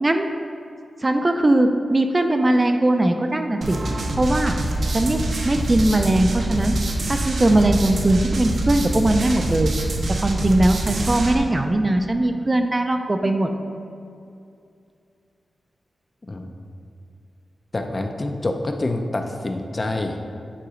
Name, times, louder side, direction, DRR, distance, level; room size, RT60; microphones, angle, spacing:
voice 1, 1.0-3.8 4.2-4.6 4.9-5.2 5.4-6.8 7.1-9.7 10.1-13.5, right 1 dB, 25° right, 6 dB, 0.4 m, -20 dB
sound 1, 3.6-11.3, right 2 dB, 60° right, 0.8 m, -25 dB
voice 2, 17.7-20.2, left 2 dB, 30° left, 5 dB, 0.5 m, -26 dB
9.7 x 3.9 x 5.0 m, 2.5 s
wide cardioid pair, 130°, 0 cm